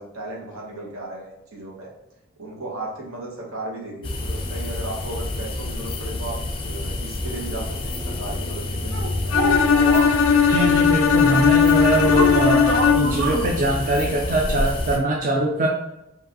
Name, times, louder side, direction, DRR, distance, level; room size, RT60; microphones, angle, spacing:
voice 1, 0.0-1.9 2.4-9.6, right 2 dB, 85° right, -3 dB, 1.3 m, -35 dB
sound 1, 4.0-15.0, left 2 dB, 25° left, 0.4 m, -29 dB
sound 2, 8.9-10.2 12.0-13.5, right 1 dB, 70° right, 0.7 m, -25 dB
Bowed string instrument, 9.3-13.3, left 6 dB, 85° left, 0.5 m, -18 dB
voice 2, 10.5-12.6 12.9-15.7, right 1 dB, 40° right, -1 dB, 0.4 m, -22 dB
4.6 x 2.6 x 3.0 m, 0.88 s
head